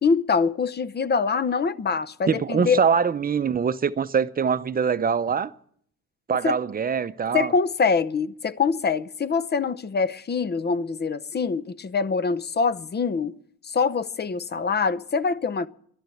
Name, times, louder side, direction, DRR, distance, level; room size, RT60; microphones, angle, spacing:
voice 1, 0.0-2.8 6.4-6.6 7.3-13.4 13.6-15.7, left 5 dB, 35° left, 0.7 m, -24 dB
voice 2, 2.3-5.5 6.3-7.5, right 6 dB, 30° right, 0.7 m, -23 dB
11.5 x 11.5 x 9.2 m
cardioid pair, 90°, 30 cm